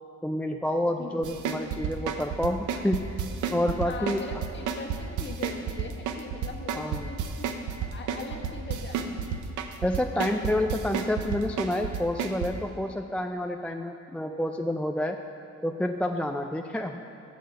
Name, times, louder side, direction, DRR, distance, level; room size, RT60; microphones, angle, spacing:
voice 1, 0.2-3.2 3.5-4.3 6.8-7.1 9.8-15.2 15.6-17.0, left 1 dB, 5° left, 5 dB, 0.3 m, -29 dB
sound 1, 1.2-12.5, right 8 dB, 85° right, 0.8 m, -30 dB
voice 2, 3.8-9.4 10.1-10.5, left 4 dB, 35° left, 2 dB, 1.3 m, -41 dB
7.8 x 6.5 x 6.9 m, 2.8 s
cardioid pair, 90°, 30 cm